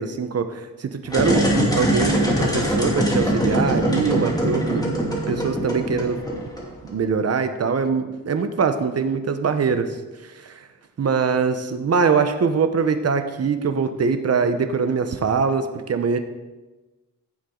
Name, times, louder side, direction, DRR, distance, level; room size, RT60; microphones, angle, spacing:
voice 1, 0.0-6.4 6.8-10.0 10.2-10.6 11.0-16.2, right 5 dB, 50° right, 9 dB, 1.0 m, -23 dB
sound 1, 1.1-6.9, equal, 10° left, 2.4 m, -22 dB
15.5 x 7.3 x 3.9 m, 1.2 s
wide cardioid pair, 120°, 32 cm